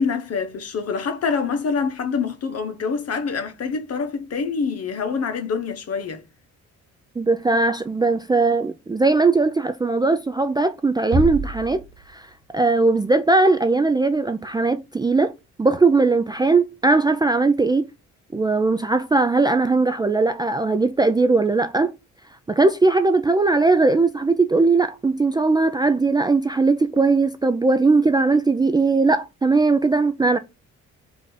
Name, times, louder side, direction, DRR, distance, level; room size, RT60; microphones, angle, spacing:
voice 1, 0.0-6.2, left 5 dB, 55° left, 1.0 m, -25 dB
voice 2, 7.2-11.8 12.1-15.3 15.6-17.9 18.3-21.9 22.5-30.4, right 3 dB, 15° right, 0.3 m, -19 dB
sound 1, 11.1-12.7, right 1 dB, 45° right, 1.1 m, -27 dB
4.1 x 2.6 x 4.8 m
cardioid pair, 90°, 30 cm